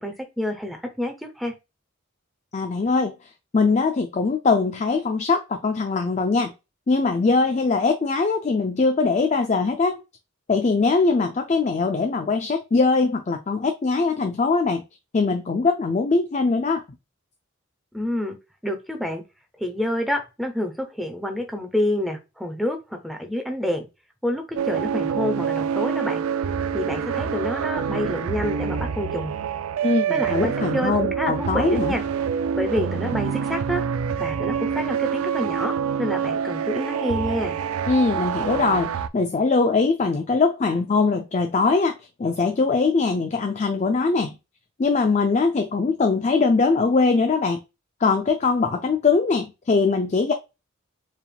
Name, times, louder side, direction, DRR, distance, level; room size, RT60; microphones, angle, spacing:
voice 1, 0.0-1.5 17.9-18.4 18.6-19.2 19.6-23.9 24.2-26.2 26.7-29.4 30.1-32.0 32.5-33.8 34.2-35.7 36.0-37.6, left 1 dB, ahead, 0.7 m, -28 dB
voice 2, 2.5-3.1 3.5-6.5 6.9-10.0 10.5-14.8 15.1-16.8 29.8-31.9 37.9-44.4 44.8-47.6 48.0-50.3, left 4 dB, 35° left, 0.4 m, -21 dB
sound 1, 24.6-39.1, right 7 dB, 85° right, 0.4 m, -26 dB
4.7 x 3.5 x 2.3 m
head